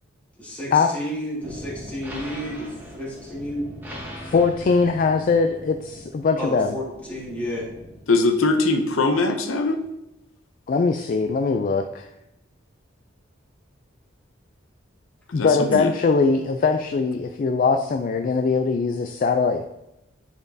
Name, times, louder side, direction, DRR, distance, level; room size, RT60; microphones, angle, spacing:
voice 1, 0.4-2.7 3.0-3.7 6.4-7.6, equal, 5° left, -6 dB, 1.9 m, -31 dB
sound 1, 1.4-8.0, equal, 10° right, 1.1 m, -40 dB
voice 2, 4.2-6.8 10.7-12.1 15.3-19.7, left 4 dB, 45° left, 6 dB, 0.3 m, -21 dB
voice 3, 8.1-9.8 15.3-15.9, left 3 dB, 85° left, 6 dB, 0.7 m, -21 dB
9.9 x 4.2 x 2.7 m, 0.92 s
head